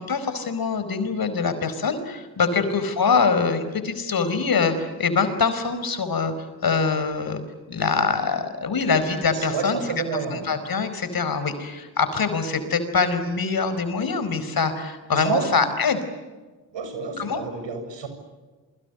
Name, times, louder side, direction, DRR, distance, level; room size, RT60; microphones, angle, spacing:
voice 1, 0.0-6.3 6.6-7.4 7.7-9.8 10.3-16.0 17.2-17.4, left 5 dB, 50° left, 11 dB, 4.9 m, -24 dB
voice 2, 9.3-10.5 15.1-15.7 16.7-18.1, right 5 dB, 65° right, 8 dB, 7.5 m, -29 dB
28.0 x 23.5 x 8.1 m, 1.3 s
hypercardioid pair, 50°, 47 cm